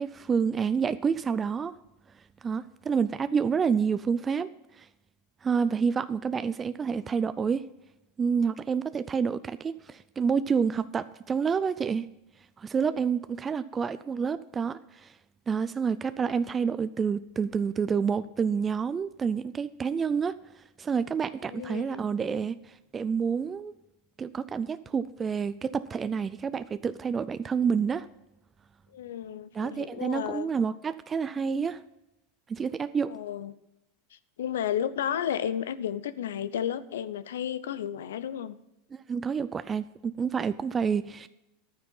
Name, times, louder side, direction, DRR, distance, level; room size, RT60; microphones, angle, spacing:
voice 1, 0.0-1.7 2.4-4.5 4.8-4.9 5.4-7.6 8.2-12.1 12.6-15.1 15.5-20.4 20.8-23.7 24.2-28.1 29.5-31.8 32.5-33.1 39.1-41.3, right 6 dB, 25° right, 13 dB, 0.4 m, -28 dB
voice 2, 21.5-22.0 28.9-30.5 33.1-33.5 34.1-38.6, left 9 dB, 85° left, 15 dB, 0.7 m, -33 dB
11.0 x 9.4 x 5.4 m, 0.90 s
hypercardioid pair, 110°, 0 cm